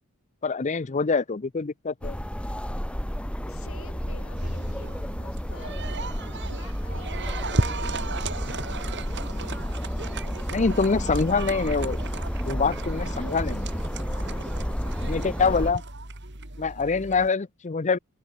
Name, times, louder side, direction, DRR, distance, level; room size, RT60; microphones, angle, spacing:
voice 1, 0.4-2.2 10.5-12.0 12.5-13.7 15.0-15.8 16.6-18.0, left 4 dB, 30° left, 0.5 m, -25 dB
sound 1, 2.0-15.7, equal, 5° left, 1.7 m, -31 dB
voice 2, 3.4-5.9 6.2-9.2 15.5-15.8, left 3 dB, 65° left, 4.9 m, -49 dB
sound 2, 4.4-17.3, right 2 dB, 50° right, 4.0 m, -35 dB
head